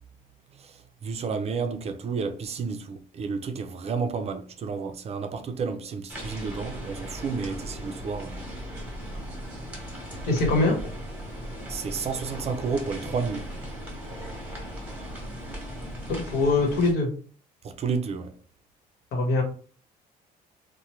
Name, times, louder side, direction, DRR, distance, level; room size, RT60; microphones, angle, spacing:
voice 1, 0.6-8.5 11.7-13.5 17.6-18.3, right 5 dB, 40° right, 0.4 m, -31 dB
sound 1, 6.1-16.9, equal, 10° right, 1.1 m, -37 dB
voice 2, 10.3-10.8 16.1-17.1 19.1-19.4, left 2 dB, 75° left, 1.1 m, -23 dB
2.8 x 2.1 x 3.0 m
cardioid pair, 110°, 17 cm